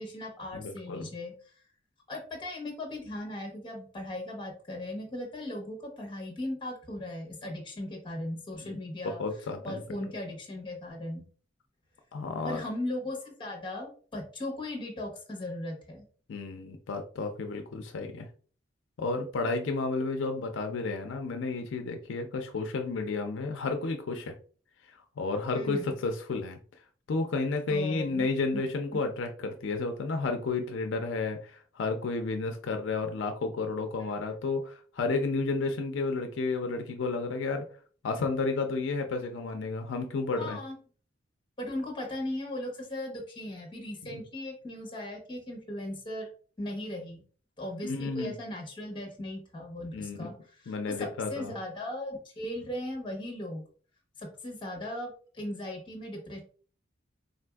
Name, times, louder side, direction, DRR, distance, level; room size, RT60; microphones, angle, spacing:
voice 1, 0.0-1.3 2.1-9.2 9.6-11.2 12.4-16.1 25.5-26.0 27.7-28.6 28.9-29.0 34.0-34.1 40.4-40.7 41.6-46.3 46.6-47.2 47.6-53.6 54.2-56.4, left 1 dB, 25° left, 2 dB, 1.0 m, -38 dB
voice 2, 0.5-1.1 8.6-8.8 9.0-9.8 12.1-12.6 16.3-18.3 19.0-24.3 25.2-26.6 27.1-37.7 38.0-40.6 47.8-48.3 49.9-50.3 50.7-51.5, left 3 dB, 80° left, 5 dB, 0.4 m, -32 dB
3.8 x 2.5 x 2.2 m, 0.43 s
head